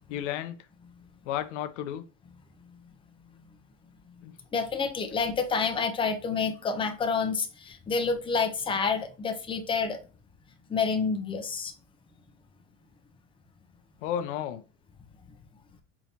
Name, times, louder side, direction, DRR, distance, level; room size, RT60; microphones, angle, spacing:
voice 1, 0.1-0.6 1.3-2.0 4.2-4.3 9.0-9.1 14.0-14.6, left 10 dB, 80° left, 0.5 m, -32 dB
voice 2, 4.5-10.0 10.7-11.7, left 5 dB, 15° left, 0.6 m, -28 dB
4.7 x 2.5 x 2.8 m
supercardioid pair, 100°, 36 cm